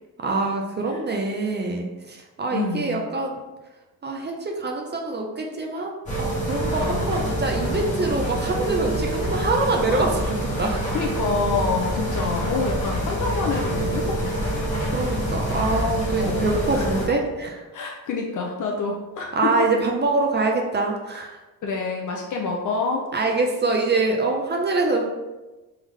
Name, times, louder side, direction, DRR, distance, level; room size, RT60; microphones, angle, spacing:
voice 1, 0.2-3.4 4.0-10.8 14.8-17.7 19.3-21.4 23.1-25.1, right 3 dB, 25° right, 1 dB, 0.4 m, -25 dB
voice 2, 2.5-3.0 6.8-7.2 9.9-10.0 10.9-14.7 16.2-16.8 17.7-19.6 21.6-23.1, left 4 dB, 50° left, 0 dB, 0.5 m, -27 dB
sound 1, 6.1-17.1, equal, 20° left, 1.2 m, -26 dB
3.6 x 3.5 x 3.1 m, 1.1 s
cardioid pair, 145°, 40 cm